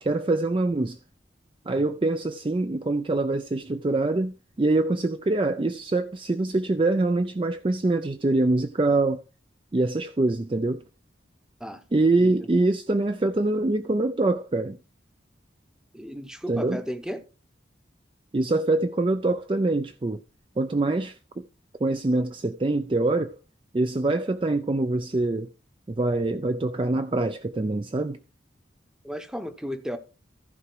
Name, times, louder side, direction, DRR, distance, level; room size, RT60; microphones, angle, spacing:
voice 1, 0.0-1.0 1.7-9.2 9.7-10.8 11.9-14.8 16.5-16.8 18.3-20.2 20.6-21.5 21.8-23.4 23.7-25.5 25.9-28.2, right 2 dB, 25° right, 0.4 m, -24 dB
voice 2, 12.2-12.5 15.9-17.3 29.0-30.0, equal, 5° right, 0.8 m, -34 dB
14.5 x 4.9 x 4.6 m
head